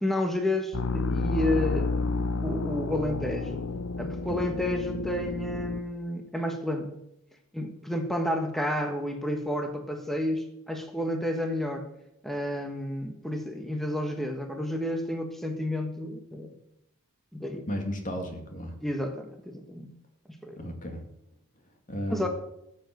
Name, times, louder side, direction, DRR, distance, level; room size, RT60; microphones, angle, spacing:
voice 1, 0.0-1.9 2.4-3.6 4.0-6.9 7.5-11.9 12.2-16.5 17.3-17.7 18.8-19.9 20.3-20.6 22.1-22.3, left 1 dB, ahead, 4 dB, 1.3 m, -30 dB
sound 1, 0.7-5.8, left 3 dB, 65° left, 0.8 m, -30 dB
voice 2, 17.7-18.7 20.6-21.0 21.9-22.3, equal, 35° left, 4 dB, 2.5 m, -34 dB
14.5 x 7.5 x 7.8 m, 0.81 s
head